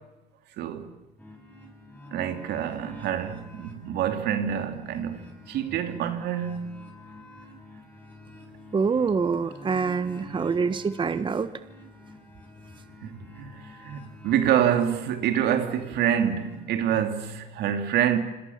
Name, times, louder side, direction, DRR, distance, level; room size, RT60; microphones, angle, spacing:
voice 1, 0.6-0.9 2.1-6.8 10.2-10.4 13.0-18.2, right 9 dB, 75° right, 3.0 m, -27 dB
sound 1, 1.2-17.0, left 2 dB, 10° left, 7.5 m, -48 dB
voice 2, 8.7-11.5, right 5 dB, 30° right, 1.1 m, -25 dB
27.0 x 26.5 x 7.3 m
cardioid pair, 110°, 17 cm